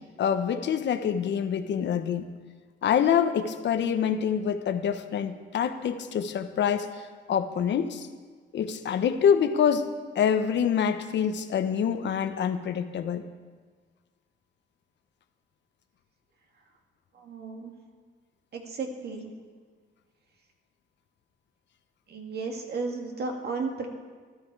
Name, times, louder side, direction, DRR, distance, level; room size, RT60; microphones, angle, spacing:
voice 1, 0.0-2.3 2.8-8.1 8.5-9.9 10.1-13.3, left 8 dB, 65° left, 9 dB, 1.0 m, -26 dB
voice 2, 17.1-17.7 18.5-19.3 22.1-23.9, right 4 dB, 55° right, 3 dB, 2.1 m, -34 dB
13.0 x 12.5 x 4.8 m, 1.5 s
cardioid pair, 90°, 20 cm